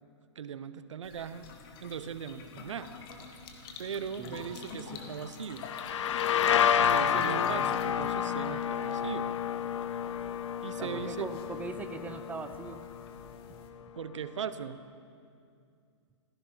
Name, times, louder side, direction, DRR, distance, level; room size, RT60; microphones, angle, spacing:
voice 1, 0.4-1.5 1.8-2.9 3.8-5.7 6.8-9.3 10.6-11.3 14.0-14.8, right 7 dB, 75° right, 13 dB, 0.8 m, -39 dB
sound 1, 1.0-13.7, left 5 dB, 50° left, 1.9 m, -48 dB
sound 2, 5.6-13.2, left 8 dB, 75° left, 0.6 m, -30 dB
voice 2, 7.1-7.7 10.8-12.9, right 4 dB, 10° right, 8 dB, 0.8 m, -41 dB
15.5 x 13.5 x 5.7 m, 2.4 s
hypercardioid pair, 125°, 16 cm